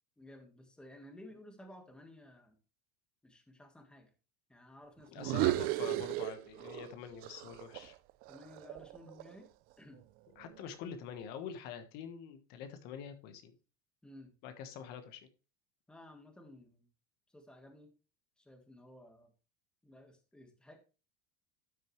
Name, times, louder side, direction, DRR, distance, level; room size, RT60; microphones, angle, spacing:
voice 1, 0.2-2.6 3.2-4.1 4.5-5.4 8.3-9.5 9.8-10.0 14.0-14.3 15.9-16.9 17.3-17.9 18.4-19.3 19.8-20.8, left 1 dB, 5° left, 5 dB, 1.7 m, -55 dB
voice 2, 5.1-7.9 10.4-13.5 14.4-15.2, left 8 dB, 55° left, 8 dB, 1.3 m, -45 dB
sound 1, 5.2-6.9 7.2-9.4, right 18 dB, 50° right, 0.5 m, -35 dB
12.0 x 6.4 x 3.2 m, 0.33 s
supercardioid pair, 145°, 20 cm